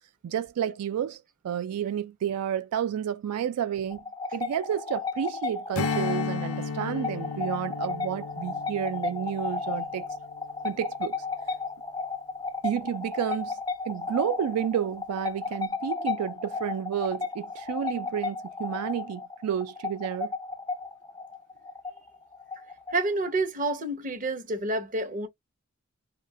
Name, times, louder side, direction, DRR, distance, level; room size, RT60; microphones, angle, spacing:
voice 1, 0.2-4.0 4.3-10.1 10.6-11.2 12.6-13.6 13.9-20.3, right 9 dB, 85° right, 0.3 m, -31 dB
sound 1, 3.9-23.3, left 4 dB, 15° left, 0.3 m, -34 dB
Strum, 5.7-10.5, left 5 dB, 70° left, 0.5 m, -34 dB
voice 2, 22.9-25.3, right 2 dB, 35° right, 0.8 m, -28 dB
2.7 x 2.4 x 3.1 m
head